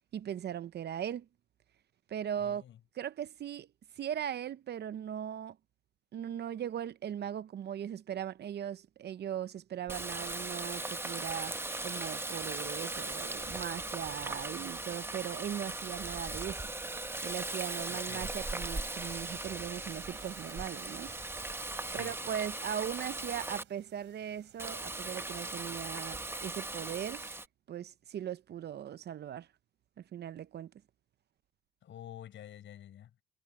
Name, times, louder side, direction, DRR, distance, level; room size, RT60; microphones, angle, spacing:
voice 1, 0.1-1.3 2.1-2.6 2.9-3.7 4.0-5.6 6.1-11.5 11.8-16.7 17.2-21.2 21.9-27.3 27.7-29.5 30.0-30.7, right 9 dB, 55° right, 0.7 m, -39 dB
voice 2, 2.4-2.8 17.9-18.3 21.9-22.2 31.8-33.2, left 11 dB, 70° left, 5.6 m, -49 dB
Water tap faucet, 9.9-23.6 24.6-27.5, right 2 dB, 10° right, 1.1 m, -39 dB
sound 1, 10.8-27.4, right 11 dB, 75° right, 3.8 m, -59 dB
cardioid pair, 90°, 20 cm